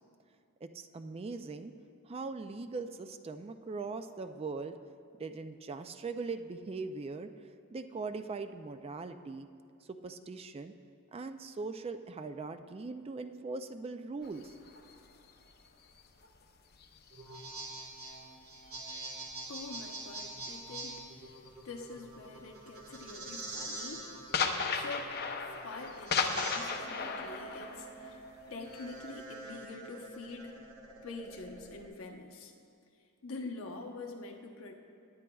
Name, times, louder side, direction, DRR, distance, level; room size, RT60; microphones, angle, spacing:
voice 1, 0.6-1.7 2.1-4.7 5.2-7.3 7.7-9.5 9.9-10.7 11.1-14.5, right 4 dB, 25° right, 9 dB, 0.3 m, -40 dB
sound 1, 14.2-18.1 18.4-21.9 22.1-22.5 22.8-29.2, left 5 dB, 45° left, 0.7 m, -37 dB
sound 2, 17.1-31.9, right 2 dB, 75° right, 2.5 m, -45 dB
voice 2, 19.5-28.2 28.5-30.5 31.0-32.5 33.2-34.8, left 3 dB, 70° left, 2 dB, 1.0 m, -46 dB
18.5 x 9.9 x 2.3 m, 2.5 s
head